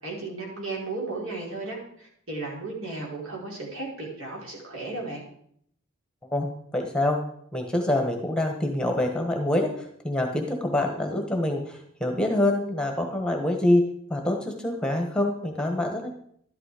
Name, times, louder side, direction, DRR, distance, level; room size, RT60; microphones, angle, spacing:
voice 1, 0.0-5.2, right 3 dB, 65° right, -3 dB, 4.9 m, -35 dB
voice 2, 6.3-7.2 7.5-9.7 10.0-13.8 14.1-16.1, left 1 dB, 5° left, 3 dB, 1.3 m, -25 dB
12.5 x 11.0 x 5.0 m, 0.68 s
head